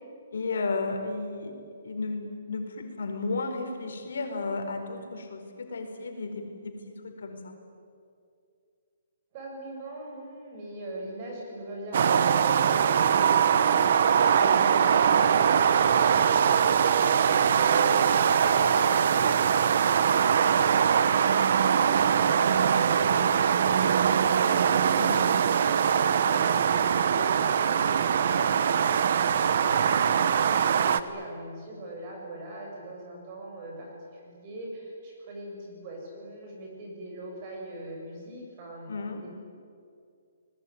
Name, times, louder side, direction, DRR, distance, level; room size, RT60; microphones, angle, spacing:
voice 1, 0.3-1.5 1.8-7.5 24.9-25.2 38.9-39.2, left 3 dB, 70° left, 4 dB, 4.7 m, -33 dB
voice 2, 9.3-19.6 25.4-39.3, right 1 dB, 25° right, 0 dB, 6.6 m, -41 dB
sound 1, 11.9-31.0, right 7 dB, 45° right, 1.1 m, -22 dB
29.0 x 20.0 x 9.6 m, 2.4 s
hypercardioid pair, 175°, 0 cm